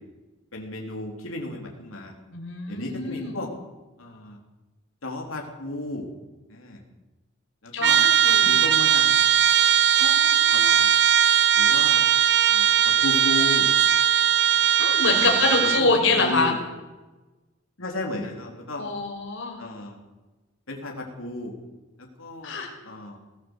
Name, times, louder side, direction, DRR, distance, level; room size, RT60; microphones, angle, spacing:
voice 1, 0.5-2.1 2.7-3.5 4.0-4.4 5.0-6.0 6.5-6.8 7.6-9.3 10.5-10.9 11.5-12.0 12.5-13.7 15.1-16.6 17.8-18.8 19.6-20.0 20.7-21.5 22.2-23.2, left 2 dB, 90° left, 1 dB, 3.8 m, -34 dB
voice 2, 2.3-3.4 7.7-8.5 10.0-10.7 14.8-16.5 18.8-19.6 22.4-22.7, left 3 dB, 70° left, 0 dB, 5.6 m, -25 dB
Trumpet, 7.8-15.9, right 9 dB, 60° right, 1.0 m, -19 dB
20.5 x 15.5 x 8.2 m, 1.1 s
head